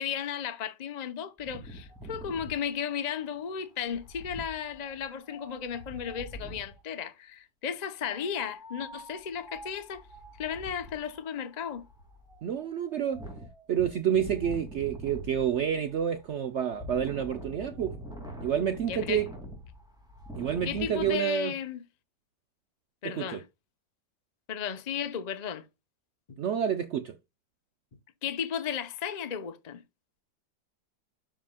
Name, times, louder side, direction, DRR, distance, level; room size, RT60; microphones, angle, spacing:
voice 1, 0.0-10.0 10.4-11.8 18.9-19.2 20.6-21.8 23.0-23.4 24.5-25.6 26.3-26.4 28.2-29.8, left 8 dB, 45° left, 0.5 m, -34 dB
Wind, 1.4-6.8 7.9-21.1, equal, ahead, 2.4 m, -45 dB
voice 2, 12.4-13.2 13.7-18.0 18.4-19.3 20.4-21.5 23.1-23.4 26.4-27.1, right 9 dB, 80° right, 0.6 m, -29 dB
12.5 x 5.1 x 2.3 m
omnidirectional pair, 1.9 m